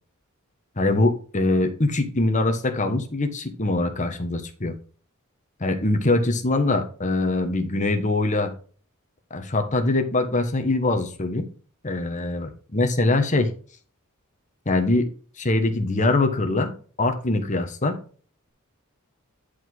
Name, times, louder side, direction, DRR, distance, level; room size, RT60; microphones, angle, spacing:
voice 1, 0.8-4.7 5.6-8.5 9.3-11.5 11.8-13.5 14.6-15.1 15.4-17.9, left 2 dB, 35° left, 6 dB, 1.3 m, -23 dB
10.5 x 4.9 x 3.9 m, 0.41 s
head